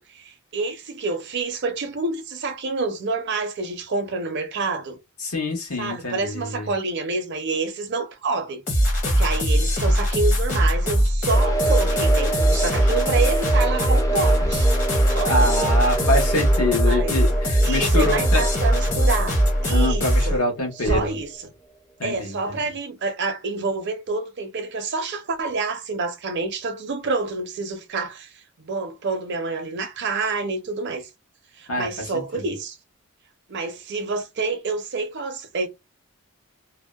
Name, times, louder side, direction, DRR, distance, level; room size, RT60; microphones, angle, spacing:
voice 1, 0.1-5.0 5.8-8.6 9.0-14.7 15.1-15.5 16.8-17.2 17.6-20.4 20.8-21.3 22.0-31.1 31.6-32.8 33.5-35.7, right 3 dB, 50° right, 0.5 m, -28 dB
voice 2, 5.2-6.7 15.3-18.4 19.7-21.2 22.0-22.6 31.7-32.5, left 1 dB, 75° left, 1.1 m, -25 dB
sound 1, 8.7-20.4, equal, 35° left, 1.0 m, -20 dB
sound 2, 11.3-21.4, right 3 dB, 15° left, 0.5 m, -28 dB
sound 3, 14.3-15.6 18.5-19.8 20.3-20.4 20.7-22.0, right 1 dB, 60° left, 1.2 m, -35 dB
2.6 x 2.0 x 2.2 m
head